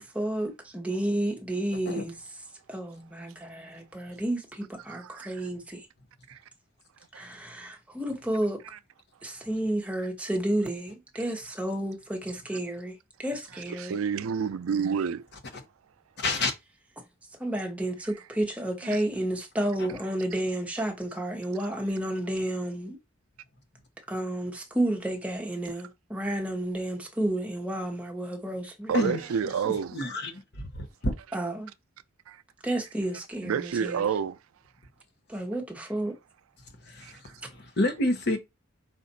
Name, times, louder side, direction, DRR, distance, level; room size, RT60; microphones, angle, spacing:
voice 1, 0.0-2.2 2.7-5.9 7.1-8.6 9.2-14.0 16.4-16.5 17.4-23.0 24.1-28.9 31.3-31.7 32.6-34.0 35.3-36.2, right 1 dB, 5° right, 0.9 m, -31 dB
voice 2, 4.9-5.3 6.3-6.4 7.1-7.3 13.7-15.3 18.9-19.0 28.9-30.0 32.3-32.4 33.4-34.4 37.0-37.3, right 7 dB, 80° right, 0.4 m, -29 dB
voice 3, 16.2-16.5 19.8-19.9 28.9-29.2 29.9-30.3 30.7-31.1 36.9-37.2 37.5-38.4, left 2 dB, 55° left, 1.0 m, -28 dB
5.1 x 2.4 x 4.0 m
head